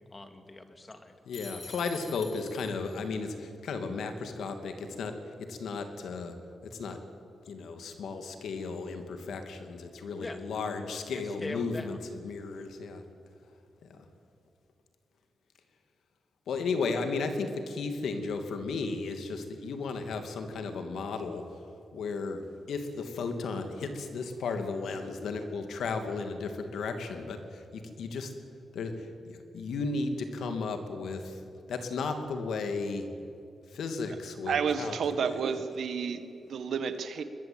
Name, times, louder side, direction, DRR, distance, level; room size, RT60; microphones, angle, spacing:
voice 1, 0.1-1.2 10.2-10.7 10.9-12.0, left 2 dB, 25° left, 7 dB, 2.5 m, -42 dB
voice 2, 1.3-6.3 6.6-7.0 7.5-13.0 13.9-14.0 16.5-21.4 21.9-28.3 28.7-31.4 31.7-33.1 33.7-35.6, left 4 dB, 85° left, 6 dB, 2.6 m, -34 dB
sound 1, 1.3-3.0, left 4 dB, 40° left, 3.3 m, -46 dB
voice 3, 34.5-37.2, right 6 dB, 75° right, 10 dB, 1.7 m, -31 dB
21.5 x 21.0 x 8.9 m, 2.5 s
cardioid pair, 95°, 0 cm